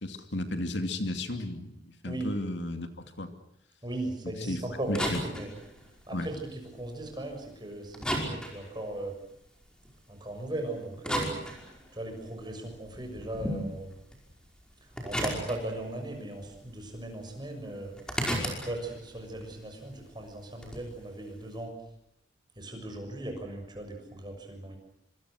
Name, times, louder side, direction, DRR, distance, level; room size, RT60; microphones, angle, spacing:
voice 1, 0.0-3.3 4.5-4.6 4.9-5.2 6.1-6.3, left 1 dB, 70° left, 7 dB, 2.5 m, -33 dB
voice 2, 3.8-5.5 6.1-9.2 10.1-11.3 11.9-13.9 15.0-17.9 18.6-21.7 22.6-24.8, right 1 dB, 25° right, 3 dB, 6.6 m, -38 dB
sound 1, 4.7-7.6 7.9-10.0 10.6-12.2 12.6-16.2 16.4-17.3 17.5-20.9, equal, 5° left, 5.3 m, -35 dB
26.0 x 25.5 x 6.4 m, 0.75 s
head